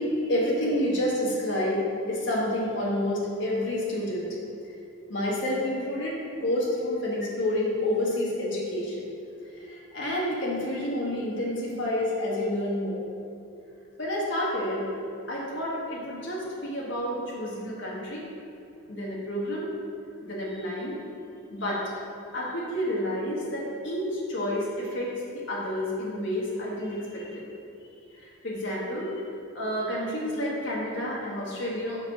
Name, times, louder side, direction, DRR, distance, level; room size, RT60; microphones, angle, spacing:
voice 1, 0.0-1.8 2.1-4.3 5.1-9.1 9.6-13.0 14.0-14.9 15.3-18.2 18.9-19.7 20.2-21.0 21.5-21.9 22.3-27.5 28.2-29.1 29.5-32.0, left 1 dB, 60° left, -5 dB, 1.6 m, -29 dB
6.4 x 4.8 x 5.6 m, 2.6 s
head